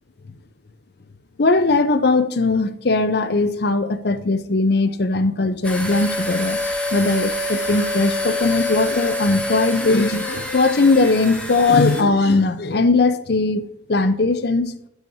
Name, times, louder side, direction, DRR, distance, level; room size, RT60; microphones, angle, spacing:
voice 1, 1.4-6.6 6.9-13.6 13.9-14.8, left 3 dB, 55° left, 0.6 m, -19 dB
sound 1, 5.6-12.0, left 1 dB, 5° left, 0.9 m, -26 dB
9.0 x 8.0 x 2.8 m
head